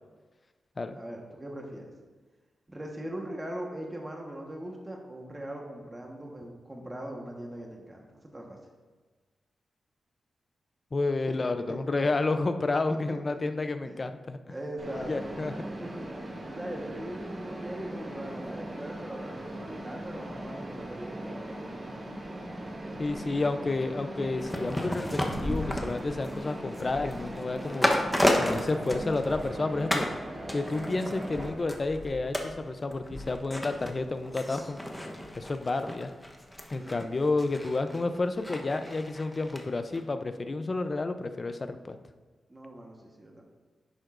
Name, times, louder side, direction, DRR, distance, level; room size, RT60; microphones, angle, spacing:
voice 1, 0.9-1.9 2.7-8.6 11.3-12.1 12.9-13.5 13.8-14.0 14.5-21.8 36.7-37.2 42.5-43.4, right 1 dB, 20° right, 0 dB, 1.3 m, -41 dB
voice 2, 10.9-14.6 15.1-15.5 22.9-27.9 28.4-30.0 30.5-34.8 35.4-36.1 36.7-42.0, left 3 dB, 35° left, 8 dB, 0.5 m, -30 dB
Mechanisms, 14.8-31.5, right 1 dB, 50° right, 2.1 m, -39 dB
sound 1, 24.4-29.6 29.9-30.2 30.5-39.6 39.9-40.0, left 1 dB, 10° left, 1.0 m, -33 dB
10.5 x 7.7 x 2.6 m, 1.3 s
wide cardioid pair, 105°, 0 cm